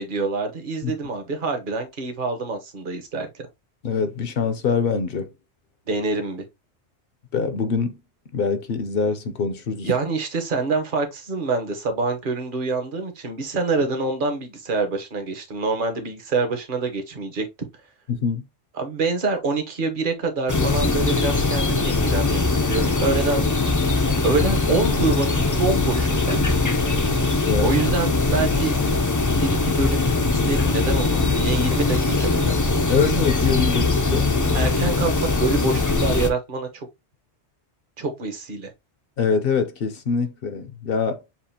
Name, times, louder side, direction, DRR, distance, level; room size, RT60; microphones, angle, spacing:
voice 1, 0.0-3.5 5.9-6.4 9.8-17.5 18.8-23.5 24.2-26.4 27.6-28.7 29.4-32.5 34.5-36.9 38.0-38.7, right 3 dB, 50° right, 1.1 m, -26 dB
voice 2, 3.8-5.3 7.3-8.0 8.3-9.9 18.1-18.5 27.0-27.8 32.9-34.3 39.2-41.2, left 5 dB, 60° left, 0.8 m, -24 dB
sound 1, 20.5-36.3, left 3 dB, 30° left, 0.4 m, -21 dB
7.1 x 2.5 x 2.7 m
omnidirectional pair, 1.2 m